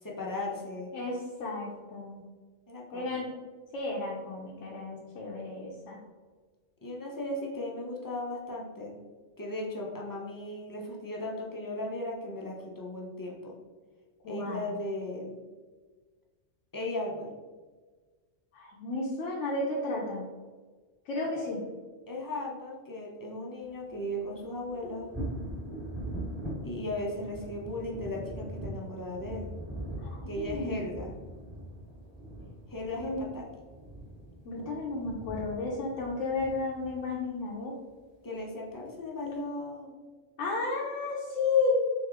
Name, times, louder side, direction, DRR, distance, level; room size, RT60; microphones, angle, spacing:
voice 1, 0.0-0.9 2.7-3.2 6.8-8.9 9.4-13.6 14.3-15.4 16.7-17.4 21.3-21.5 22.1-25.1 26.6-29.5 30.3-31.1 32.7-33.5 34.5-34.7 38.2-40.0, left 1 dB, 25° left, -3 dB, 0.4 m, -37 dB
voice 2, 0.9-2.2 2.9-3.3 3.7-6.0 14.2-14.7 18.5-20.2 21.1-21.6 30.0-30.8 33.0-33.3 34.4-37.7 40.4-41.7, left 3 dB, 90° left, -4 dB, 1.0 m, -32 dB
sound 1, 23.8-37.5 38.7-38.8 39.3-39.4, right 1 dB, 20° right, 1.3 m, -41 dB
3.5 x 3.3 x 3.4 m, 1.4 s
omnidirectional pair, 1.2 m